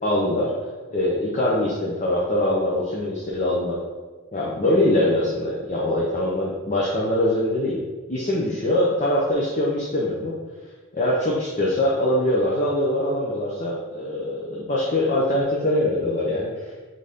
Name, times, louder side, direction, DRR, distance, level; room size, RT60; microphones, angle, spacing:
voice 1, 0.0-0.5 0.9-3.8 4.3-7.8 8.1-10.3 10.9-16.7, left 1 dB, 35° left, -5 dB, 0.6 m, -23 dB
4.0 x 3.8 x 3.4 m, 1.3 s
head